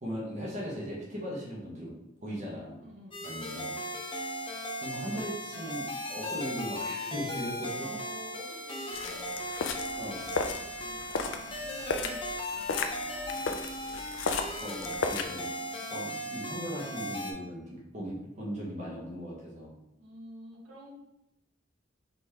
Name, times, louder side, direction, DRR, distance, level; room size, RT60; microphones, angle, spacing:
voice 1, 0.0-1.9 2.2-2.8 3.2-4.1 4.8-7.8 10.0-10.3 14.6-15.4 15.9-19.7, equal, 40° right, -5 dB, 1.1 m, -38 dB
voice 2, 2.8-3.3 7.8-9.4 9.7-10.2 10.5-12.2 12.6-14.1 15.3-15.9 20.0-20.9, equal, 75° right, -3 dB, 1.2 m, -51 dB
sound 1, 3.1-17.3, left 1 dB, 25° left, 0.7 m, -37 dB
sound 2, 8.9-15.2, left 4 dB, 70° left, 0.4 m, -35 dB
4.0 x 3.2 x 3.5 m, 0.87 s
head